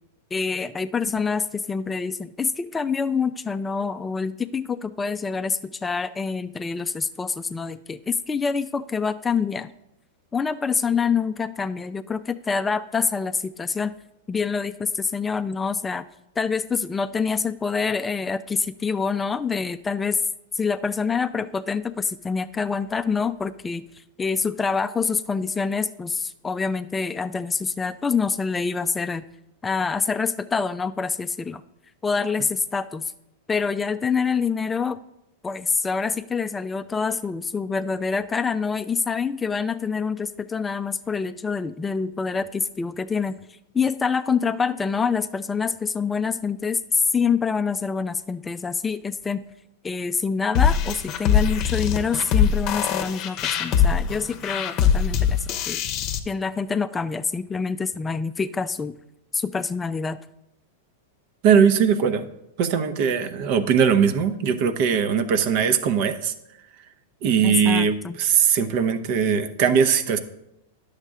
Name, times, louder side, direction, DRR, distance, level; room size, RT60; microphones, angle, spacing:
voice 1, 0.3-9.7 10.3-13.9 14.3-16.0 16.4-20.2 20.6-23.8 24.2-29.2 29.6-31.6 32.0-33.1 33.5-35.0 35.4-43.4 43.7-49.4 49.8-55.8 56.3-58.9 59.3-60.2 67.4-68.2, left 5 dB, 15° left, 12 dB, 0.3 m, -26 dB
sound 1, 50.5-56.2, left 8 dB, 40° left, 0.8 m, -22 dB
voice 2, 61.4-62.3 62.6-66.3 67.2-70.2, right 7 dB, 55° right, 11 dB, 0.8 m, -20 dB
9.8 x 6.5 x 3.6 m, 0.84 s
hypercardioid pair, 105°, 0 cm